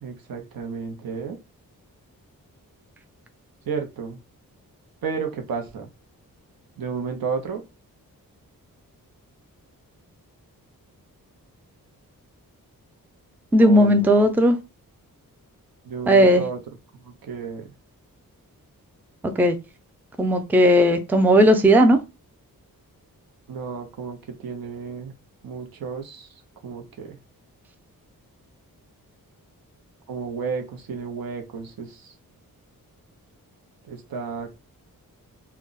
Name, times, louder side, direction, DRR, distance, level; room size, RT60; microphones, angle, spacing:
voice 1, 0.0-1.4 3.7-4.2 5.0-5.9 6.8-7.6 13.6-14.3 15.8-16.6 17.0-17.7 23.5-25.1 25.4-26.3 26.6-27.2 30.1-32.1 33.8-34.5, right 5 dB, 80° right, 0.8 m, -32 dB
voice 2, 13.5-14.6 16.1-16.4 19.4-19.6 20.2-22.0, equal, 5° right, 0.4 m, -16 dB
2.3 x 2.1 x 3.8 m
wide cardioid pair, 95°, 35 cm